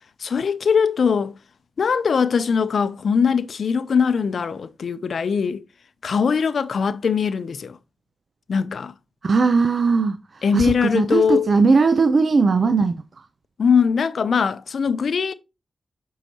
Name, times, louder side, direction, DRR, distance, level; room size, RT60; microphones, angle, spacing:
voice 1, 0.2-1.4 1.8-5.6 6.0-7.8 8.5-8.9 10.4-11.5 13.6-15.3, left 6 dB, 75° left, 0.5 m, -21 dB
voice 2, 9.2-13.0, right 4 dB, 60° right, 0.5 m, -19 dB
8.3 x 4.7 x 2.9 m
cardioid pair, 50°, 0 cm